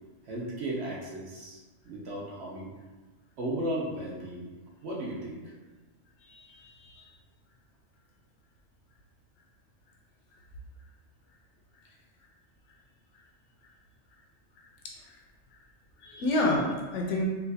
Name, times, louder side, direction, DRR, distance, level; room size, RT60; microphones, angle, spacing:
voice 1, 0.2-1.6 1.8-2.7 3.4-4.5 4.8-5.5, right 1 dB, 60° right, -4 dB, 0.9 m, -35 dB
voice 2, 6.2-7.1 14.6-15.2 16.0-17.2, left 1 dB, 70° left, 0 dB, 0.9 m, -30 dB
4.0 x 2.5 x 2.7 m, 1.3 s
omnidirectional pair, 1.3 m